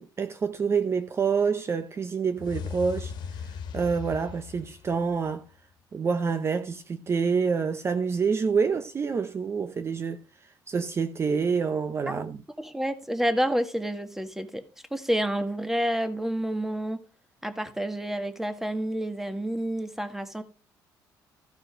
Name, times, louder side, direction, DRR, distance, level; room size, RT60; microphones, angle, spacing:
voice 1, 0.0-3.5 3.7-5.4 5.9-10.2 10.7-12.4, right 5 dB, 35° right, 0.7 m, -27 dB
sound 1, 2.4-5.5, left 6 dB, 70° left, 1.5 m, -38 dB
voice 2, 12.6-14.6 14.9-17.0 17.4-20.4, equal, 5° right, 1.5 m, -29 dB
14.5 x 5.2 x 5.0 m
cardioid pair, 105°, 8 cm